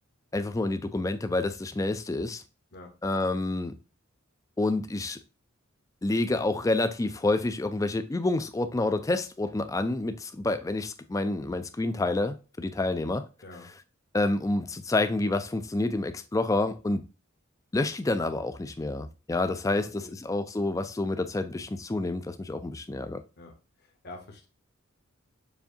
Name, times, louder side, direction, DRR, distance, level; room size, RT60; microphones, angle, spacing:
voice 1, 0.3-2.4 3.0-3.7 4.6-5.2 6.0-13.3 14.1-17.0 17.7-23.2, left 2 dB, 15° left, 0.3 m, -28 dB
voice 2, 13.4-13.7 19.6-20.1 23.4-24.5, left 2 dB, 50° left, 1.0 m, -47 dB
6.9 x 2.6 x 2.6 m
head